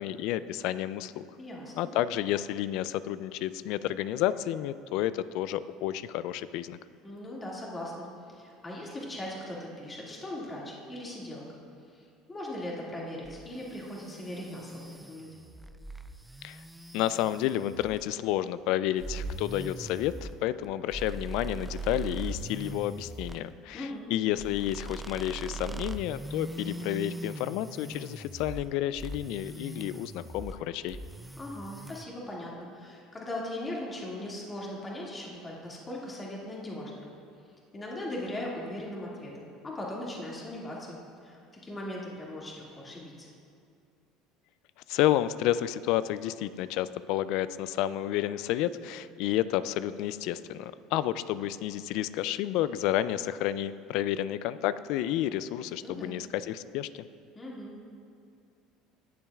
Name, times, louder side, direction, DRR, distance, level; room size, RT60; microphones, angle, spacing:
voice 1, 0.0-1.2 1.8-6.8 16.4-16.6 16.9-31.0 44.9-57.1, left 13 dB, 70° left, 16 dB, 0.3 m, -30 dB
voice 2, 1.4-1.9 7.0-11.6 11.9-15.5 23.7-24.1 31.4-37.1 37.7-43.3 55.8-56.2 57.3-57.8, left 1 dB, 20° left, -4 dB, 2.1 m, -39 dB
sound 1, 13.2-18.1 19.0-23.4 24.4-28.7 29.0-30.6 30.9-32.0, right 2 dB, 5° right, 0.4 m, -41 dB
18.0 x 7.2 x 2.4 m, 2.4 s
supercardioid pair, 85°, 0 cm